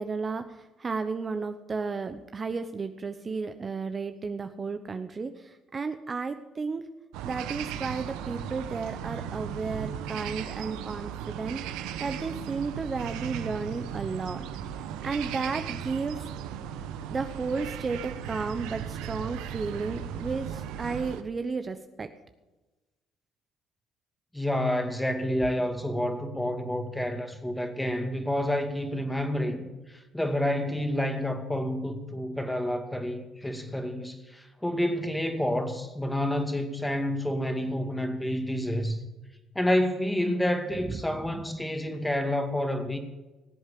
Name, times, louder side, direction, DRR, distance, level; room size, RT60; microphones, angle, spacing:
voice 1, 0.0-6.8 7.2-11.6 12.0-14.5 15.0-16.3 17.1-22.1 40.9-41.5, right 4 dB, 35° right, 0.9 m, -33 dB
sound 1, 7.1-21.2, right 9 dB, 80° right, 0.9 m, -36 dB
voice 2, 24.3-39.0 39.6-43.0, left 1 dB, 10° left, 2.2 m, -29 dB
18.5 x 8.0 x 6.8 m
supercardioid pair, 75°, 0 cm